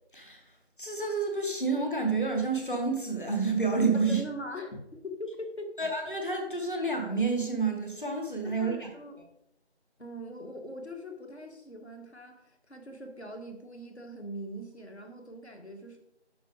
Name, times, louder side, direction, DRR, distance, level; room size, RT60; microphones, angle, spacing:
voice 1, 0.1-0.4 0.8-4.2 5.8-8.9, right 4 dB, 45° left, 2 dB, 1.8 m, -29 dB
voice 2, 4.1-5.8 8.4-9.2 10.0-16.0, equal, 70° left, 3 dB, 1.9 m, -42 dB
9.8 x 6.1 x 3.4 m, 0.81 s
figure-of-eight pair, 180°, 35 cm